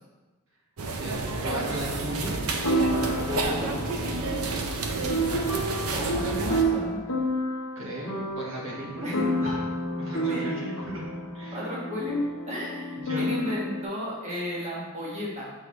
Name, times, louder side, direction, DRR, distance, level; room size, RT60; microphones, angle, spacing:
sound 1, 0.8-6.6, right 3 dB, 85° right, 0.7 m, -30 dB
voice 1, 1.0-2.4 7.7-9.1 9.4-9.6 10.0-11.0 11.3-11.7 13.0-13.3, equal, 60° right, -4 dB, 1.5 m, -35 dB
sound 2, 2.6-13.8, right 1 dB, 75° left, 1.0 m, -30 dB
voice 2, 2.9-4.6 5.9-7.0 9.0-9.2 10.3-10.5 11.5-12.2 12.4-15.5, left 1 dB, 30° right, -6 dB, 1.4 m, -34 dB
6.4 x 5.6 x 3.2 m, 1.2 s
head